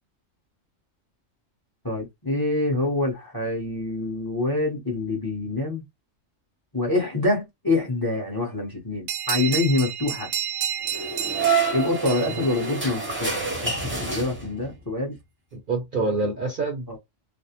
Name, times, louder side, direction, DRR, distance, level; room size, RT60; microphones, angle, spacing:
voice 1, 1.8-5.8 6.7-10.3 11.7-13.7 14.0-15.1 16.9-17.0, left 2 dB, 20° left, 0.7 m, -26 dB
sound 1, 9.1-13.3, right 9 dB, 85° right, 1.0 m, -31 dB
sound 2, 10.8-14.8, right 5 dB, 10° right, 0.6 m, -27 dB
voice 2, 15.5-17.0, right 3 dB, 50° right, 0.7 m, -27 dB
2.4 x 2.0 x 2.8 m
omnidirectional pair, 1.3 m